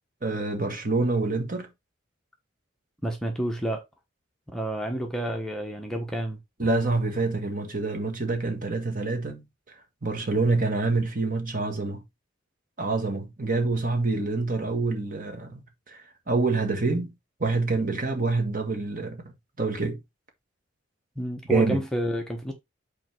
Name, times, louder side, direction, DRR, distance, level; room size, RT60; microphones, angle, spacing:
voice 1, 0.2-1.7 6.6-12.0 12.8-16.0 16.3-17.1 17.4-20.0 21.5-21.8, right 3 dB, 45° right, 1.7 m, -27 dB
voice 2, 3.0-3.8 4.5-6.4 21.2-22.5, equal, 5° left, 1.2 m, -29 dB
5.7 x 4.5 x 4.5 m
head